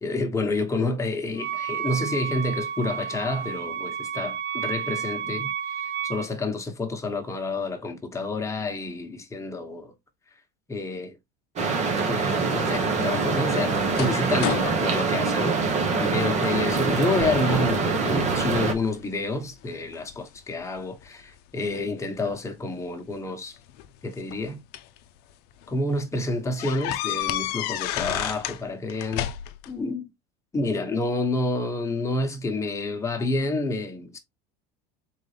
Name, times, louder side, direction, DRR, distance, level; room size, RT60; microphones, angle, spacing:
voice 1, 0.0-9.9 10.7-11.2 12.1-15.6 16.0-23.6 24.0-24.6 25.7-29.3 29.7-30.1 30.5-34.2, left 2 dB, 15° left, 1.3 m, -29 dB
Wind instrument woodwind instrument, 1.4-6.3, right 8 dB, 60° right, 0.7 m, -31 dB
sound 1, 11.6-18.7, right 4 dB, 35° right, 1.2 m, -24 dB
sound 2, 12.7-16.1 16.6-16.9 17.2-17.9 18.3-19.0 19.6-21.1 22.2-22.4 23.6-25.0 25.5-25.7 26.0-26.1 26.6-28.6 28.9-29.7, left 13 dB, 60° left, 0.6 m, -32 dB
4.0 x 3.8 x 3.3 m
supercardioid pair, 115°, 19 cm